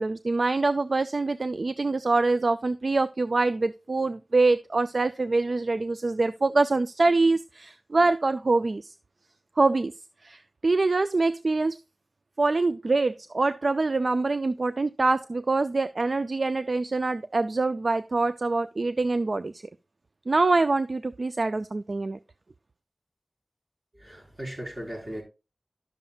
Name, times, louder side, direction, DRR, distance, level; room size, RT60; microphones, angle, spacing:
voice 1, 0.0-8.9 9.6-9.9 10.2-11.8 12.4-19.6 20.3-22.2, right 3 dB, 60° right, 0.4 m, -25 dB
voice 2, 24.0-25.2, equal, 35° right, 5.8 m, -37 dB
11.5 x 7.1 x 2.4 m
wide cardioid pair, 70°, 0 cm